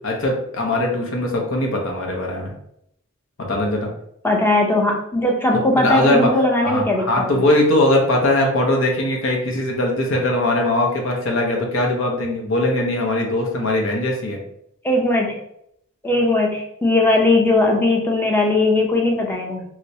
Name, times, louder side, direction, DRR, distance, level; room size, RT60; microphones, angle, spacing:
voice 1, 0.0-2.5 3.4-3.9 5.8-6.3 6.6-14.4, left 1 dB, 65° left, 1 dB, 0.8 m, -20 dB
voice 2, 4.2-7.4 14.8-15.3 16.0-19.6, left 2 dB, 10° left, 0 dB, 0.6 m, -19 dB
3.1 x 2.9 x 2.7 m, 0.74 s
head